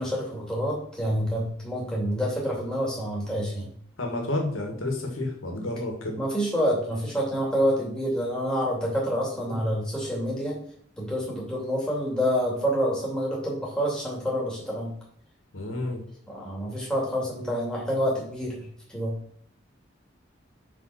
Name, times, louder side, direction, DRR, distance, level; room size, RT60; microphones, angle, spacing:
voice 1, 0.0-3.7 6.1-10.6 11.0-14.9 16.3-19.1, equal, 5° left, -4 dB, 2.7 m, -27 dB
voice 2, 4.0-6.2 9.5-9.7 15.5-16.0, left 2 dB, 90° left, 2 dB, 2.0 m, -30 dB
5.4 x 5.2 x 5.9 m, 0.63 s
head